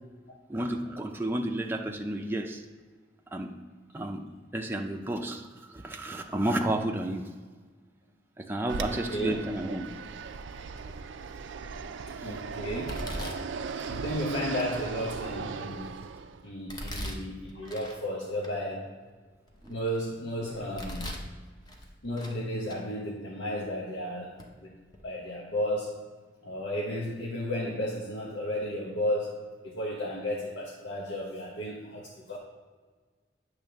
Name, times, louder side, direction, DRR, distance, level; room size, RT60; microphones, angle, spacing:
voice 1, 0.5-2.6 3.3-3.5 3.9-4.2 4.5-7.3 8.4-9.9 12.2-12.3 13.1-13.2 19.6-19.8, right 1 dB, 10° right, 2 dB, 0.5 m, -32 dB
Fixed-wing aircraft airplane, 8.7-16.5, right 5 dB, 90° right, 0.4 m, -38 dB
voice 2, 8.8-9.4 12.1-13.4 13.9-15.9 16.4-18.9 19.7-21.1 22.0-24.8 25.0-26.0 26.4-32.4, equal, 85° left, -4 dB, 1.1 m, -33 dB
Domestic sounds home sounds, 10.7-11.1 11.7-12.1 12.9-14.0 14.6-14.7 15.3-16.0 16.7-18.0 18.4-18.5 19.1-20.0 20.5-21.3 21.7-22.4 22.7-22.8 23.6-23.7 24.4-24.5 24.8-25.0, equal, 20° left, 0.8 m, -40 dB
8.7 x 3.2 x 6.3 m, 1.5 s
head